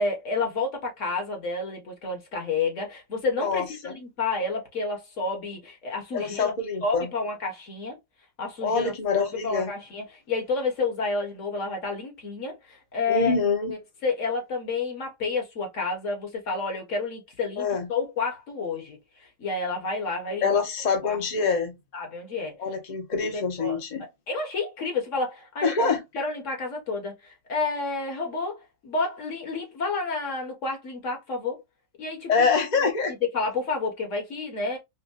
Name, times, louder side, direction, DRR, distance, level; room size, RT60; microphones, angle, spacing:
voice 1, 0.0-6.5 6.8-8.0 8.4-13.4 13.7-20.6 21.0-21.6 21.9-22.5 23.3-23.8 24.3-31.6 32.0-32.9 33.2-34.8, left 3 dB, 45° left, 1.4 m, -30 dB
voice 2, 3.4-4.0 6.1-7.1 8.6-9.7 13.1-13.7 17.6-17.9 20.4-21.7 22.6-24.1 25.6-26.0 32.3-33.1, left 5 dB, 75° left, 0.4 m, -25 dB
5.4 x 2.1 x 2.3 m
omnidirectional pair, 2.1 m